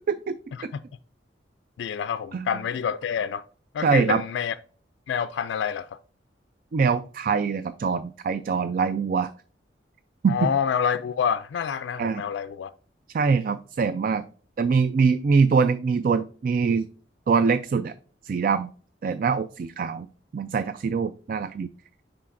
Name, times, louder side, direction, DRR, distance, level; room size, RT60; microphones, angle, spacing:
voice 1, 0.1-0.4 0.6-0.7 2.3-2.4 3.8-4.2 6.7-9.3 10.2-10.5 12.0-12.2 13.1-14.2 14.6-16.9 17.3-17.9 18.2-18.7 19.0-20.1 20.3-21.7, right 5 dB, 50° right, 0.3 m, -23 dB
voice 2, 1.8-3.4 3.7-4.5 5.1-6.0 10.3-12.7, left 7 dB, 85° left, 0.3 m, -27 dB
9.9 x 3.8 x 2.5 m
head